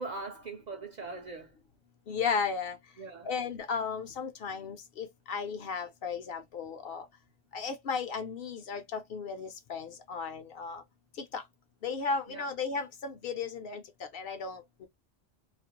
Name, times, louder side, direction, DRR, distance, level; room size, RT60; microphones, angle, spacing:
voice 1, 0.0-1.6 3.0-3.3 12.3-12.5, right 3 dB, 55° right, 0.5 m, -41 dB
voice 2, 2.1-2.8 3.2-7.1 7.5-10.8 11.2-11.4 11.8-14.9, left 5 dB, 65° left, 0.7 m, -35 dB
2.5 x 2.0 x 2.8 m
omnidirectional pair, 1.1 m